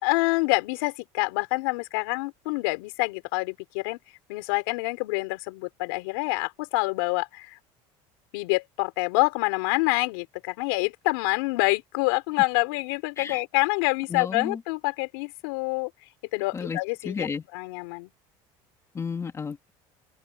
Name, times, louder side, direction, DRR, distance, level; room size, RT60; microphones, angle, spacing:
voice 1, 0.0-4.0 4.3-7.6 8.3-15.9 16.3-17.3 17.5-18.1, left 26 dB, 90° left, 4.8 m, -27 dB
voice 2, 14.1-14.6 16.5-16.8 17.0-17.4 18.9-19.7, left 5 dB, 25° left, 2.6 m, -32 dB
open air
supercardioid pair, 120°, 12 cm